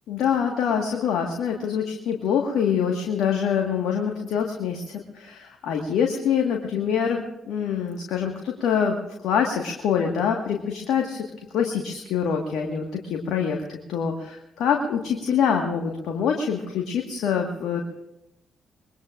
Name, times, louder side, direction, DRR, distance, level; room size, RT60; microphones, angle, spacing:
voice 1, 0.1-9.0 9.2-11.2 11.5-17.8, left 7 dB, 70° left, 2 dB, 1.6 m, -25 dB
25.0 x 21.5 x 2.5 m, 0.87 s
hypercardioid pair, 45°, 0 cm